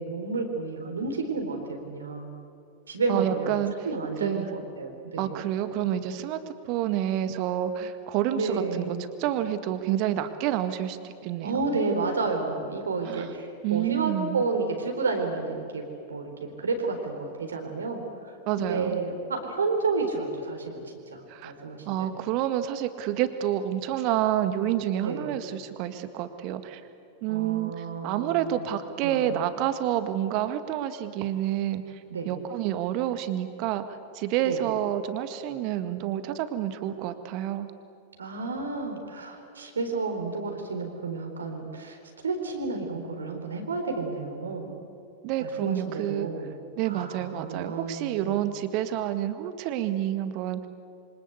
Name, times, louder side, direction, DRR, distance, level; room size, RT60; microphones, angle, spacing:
voice 1, 0.0-2.3 2.9-3.5 3.8-5.3 8.3-9.0 11.4-18.0 18.7-22.1 25.0-25.3 27.3-28.6 29.0-29.4 32.1-32.3 34.4-34.6 38.2-42.0 42.2-44.7 45.4-46.5 46.9-48.5, right 3 dB, 70° right, 4 dB, 4.0 m, -31 dB
voice 2, 3.1-3.8 4.2-4.5 5.2-6.4 6.6-11.6 13.1-13.3 13.6-14.4 18.5-19.0 21.3-21.5 21.9-26.8 27.2-31.8 32.3-37.7 45.2-46.3 46.8-50.7, right 11 dB, 45° right, 10 dB, 1.8 m, -28 dB
27.0 x 25.0 x 8.2 m, 2.5 s
figure-of-eight pair, 90°, 0 cm